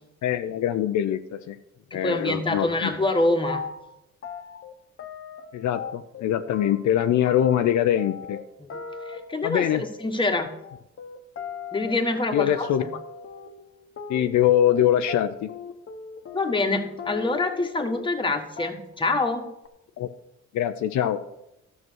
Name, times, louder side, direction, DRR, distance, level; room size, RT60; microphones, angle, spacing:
voice 1, 0.2-1.6 1.9-2.9 5.5-8.4 9.4-9.8 12.3-12.8 14.1-15.5 20.0-20.1 20.5-21.2, left 11 dB, 70° left, 8 dB, 0.6 m, -23 dB
voice 2, 1.9-3.6 8.6-8.7 9.1-10.5 11.7-12.9 16.3-19.5, left 2 dB, 15° left, 4 dB, 1.4 m, -26 dB
sound 1, 3.1-3.9 4.2-6.2 6.5-18.3 18.6-19.0 19.3-19.7, left 6 dB, 45° left, 1.1 m, -39 dB
12.5 x 6.1 x 6.3 m, 0.86 s
cardioid pair, 90°, 30 cm